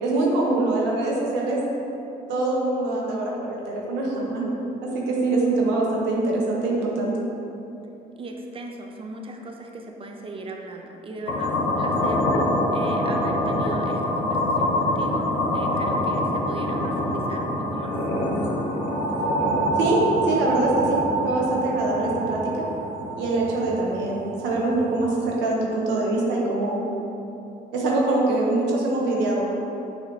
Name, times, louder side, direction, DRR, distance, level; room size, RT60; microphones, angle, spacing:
voice 1, 0.0-1.6 2.3-7.1 19.8-22.6 23.2-26.8 27.7-29.7, right 2 dB, 85° right, -3 dB, 0.8 m, -24 dB
voice 2, 8.2-18.0, right 2 dB, 30° right, 2 dB, 0.6 m, -38 dB
sound 1, 11.3-25.3, equal, 80° left, 0.8 m, -25 dB
5.7 x 2.9 x 3.1 m, 2.9 s
cardioid pair, 80°, 18 cm